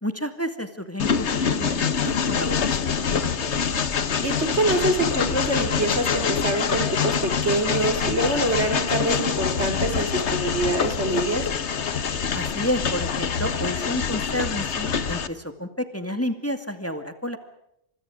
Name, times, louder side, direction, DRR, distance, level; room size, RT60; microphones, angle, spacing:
voice 1, 0.0-3.9 12.3-17.4, left 1 dB, 15° left, 9 dB, 2.3 m, -31 dB
Train, 1.0-15.3, left 6 dB, 85° left, 1.5 m, -25 dB
voice 2, 4.2-11.5, right 2 dB, 85° right, 6 dB, 4.8 m, -25 dB
29.5 x 26.0 x 5.0 m, 0.78 s
omnidirectional pair, 1.1 m